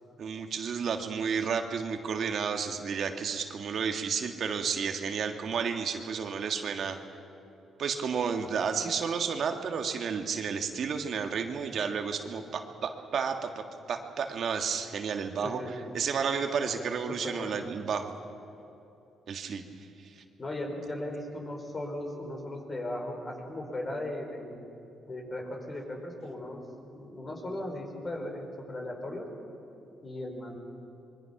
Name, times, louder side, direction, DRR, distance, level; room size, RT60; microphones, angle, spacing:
voice 1, 0.2-7.0 7.8-15.6 15.9-18.1 19.3-19.6 20.0-20.2, right 6 dB, 60° right, 5 dB, 1.7 m, -31 dB
voice 2, 15.4-15.9 16.8-17.6 20.4-24.6 25.1-26.6 26.9-29.3 30.0-30.6, left 1 dB, 35° left, 1 dB, 5.3 m, -37 dB
26.0 x 22.5 x 6.0 m, 2.9 s
cardioid pair, 90°, 0 cm